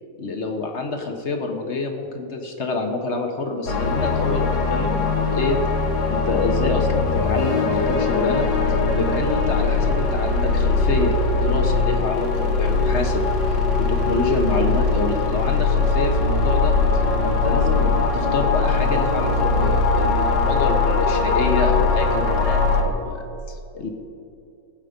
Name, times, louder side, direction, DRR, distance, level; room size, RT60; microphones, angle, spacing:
voice 1, 0.2-5.6 6.1-8.5 8.9-13.2 13.8-16.7 17.2-23.9, left 3 dB, 45° left, 4 dB, 1.1 m, -27 dB
sound 1, 3.7-22.8, left 4 dB, 65° left, 1.7 m, -21 dB
17.0 x 8.2 x 5.1 m, 2.6 s
omnidirectional pair, 1.9 m